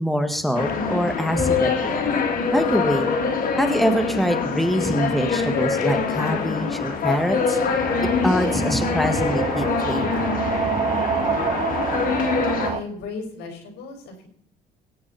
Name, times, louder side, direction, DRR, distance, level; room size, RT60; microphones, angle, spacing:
voice 1, 0.0-2.2 2.5-3.1 3.6-7.6 8.2-10.3, equal, ahead, 6 dB, 1.8 m, -24 dB
sound 1, 0.6-12.7, left 5 dB, 55° left, 2.6 m, -24 dB
sound 2, 7.8-12.8, right 7 dB, 30° right, 0.7 m, -27 dB
voice 2, 12.6-14.3, left 4 dB, 75° left, 4 dB, 4.5 m, -35 dB
22.0 x 9.5 x 4.3 m, 0.64 s
cardioid pair, 110°, 17 cm